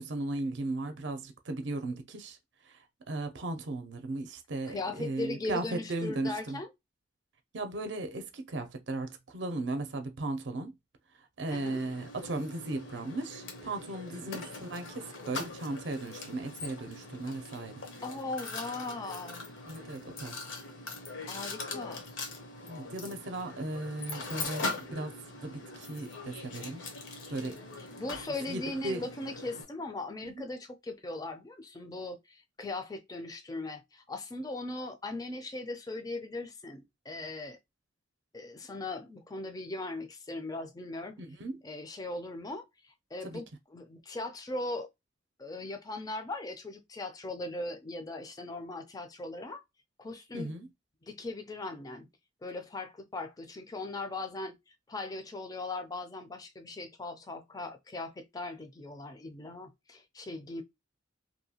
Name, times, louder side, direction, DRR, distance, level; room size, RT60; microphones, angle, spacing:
voice 1, 0.0-2.4 2.7-6.6 7.5-10.7 11.4-17.8 19.6-20.4 22.6-26.8 27.3-27.6 28.5-29.0 30.2-30.4 41.2-41.6 43.2-43.4 50.3-50.7, right 2 dB, 65° right, 0.5 m, -36 dB
voice 2, 4.7-6.7 11.5-11.8 14.1-14.4 18.0-19.5 21.3-22.1 27.8-37.6 38.3-41.2 41.6-43.4 43.7-44.9 45.4-49.6 50.0-50.5 51.0-52.1 52.4-54.6 54.9-60.6, left 2 dB, 20° left, 0.4 m, -39 dB
Mechanisms, 11.5-29.6, left 3 dB, 75° left, 0.8 m, -42 dB
2.7 x 2.2 x 2.8 m
head